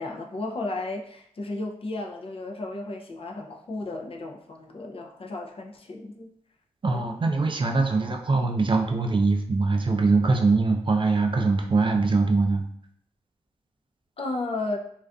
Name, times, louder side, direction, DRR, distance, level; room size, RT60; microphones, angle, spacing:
voice 1, 0.0-6.3 6.9-7.1 14.2-14.8, left 2 dB, 45° left, 2 dB, 0.4 m, -34 dB
voice 2, 6.8-12.6, right 3 dB, 40° right, 3 dB, 0.4 m, -22 dB
2.4 x 2.3 x 2.2 m, 0.67 s
cardioid pair, 45°, 13 cm